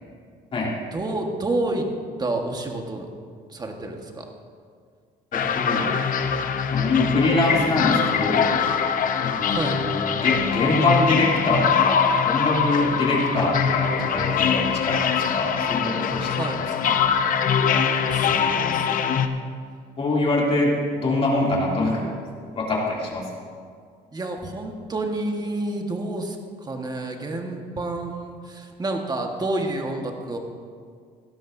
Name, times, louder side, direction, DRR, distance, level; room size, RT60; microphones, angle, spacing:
voice 1, 0.9-1.9 2.2-3.1 3.5-4.3 9.5-9.8 16.3-16.6 18.0-19.2 24.1-30.4, right 2 dB, 25° right, 3 dB, 1.5 m, -29 dB
sound 1, 5.3-19.3, left 7 dB, 55° left, 0.8 m, -23 dB
voice 2, 5.3-5.9 6.7-8.5 9.2-16.3 16.6-16.9 20.0-22.1 22.4-23.3, left 2 dB, 35° left, -4 dB, 2.8 m, -24 dB
17.0 x 12.5 x 2.7 m, 2.1 s
cardioid pair, 110°, 17 cm